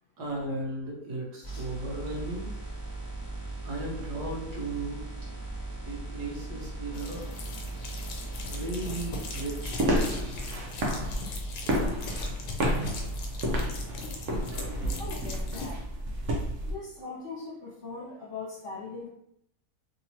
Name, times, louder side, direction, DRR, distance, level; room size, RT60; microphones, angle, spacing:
voice 1, 0.2-2.5 3.6-5.0 5.9-7.3 8.5-10.4, right 2 dB, 75° right, -1 dB, 1.4 m, -36 dB
sound 1, 1.4-9.9, right 2 dB, 15° right, 1.3 m, -38 dB
sound 2, 6.9-15.7, left 3 dB, 70° left, 1.2 m, -41 dB
sound 3, 9.6-16.7, equal, 60° right, 0.8 m, -30 dB
voice 2, 15.0-15.8 16.6-19.1, left 3 dB, 50° left, -6 dB, 1.5 m, -40 dB
3.5 x 2.9 x 2.9 m, 0.72 s
omnidirectional pair, 1.8 m